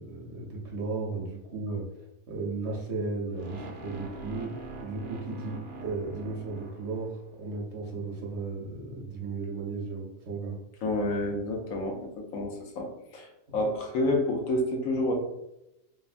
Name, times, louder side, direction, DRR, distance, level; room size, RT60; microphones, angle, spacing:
voice 1, 0.0-1.8 2.3-10.6 13.5-13.6, right 3 dB, 60° right, -2 dB, 0.9 m, -35 dB
sound 1, 3.3-7.4, right 2 dB, 85° right, 0.4 m, -43 dB
voice 2, 10.8-15.1, left 1 dB, 75° left, 1 dB, 1.0 m, -29 dB
3.2 x 2.0 x 2.4 m, 0.89 s
omnidirectional pair, 1.5 m